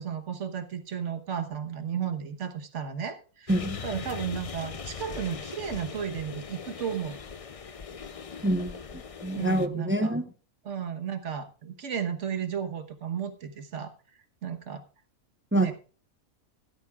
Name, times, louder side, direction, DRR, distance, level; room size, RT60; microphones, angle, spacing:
voice 1, 0.0-3.5 3.8-7.2 9.3-10.1 10.6-13.9 14.4-14.8 15.6-15.7, right 8 dB, 60° right, 7 dB, 1.4 m, -33 dB
sound 1, 3.5-9.7, left 5 dB, 55° left, 0.4 m, -40 dB
voice 2, 3.5-3.8 8.4-8.8 9.2-10.2 15.5-15.7, equal, 10° right, 8 dB, 0.7 m, -26 dB
16.0 x 12.5 x 2.4 m, 0.36 s
omnidirectional pair, 1.5 m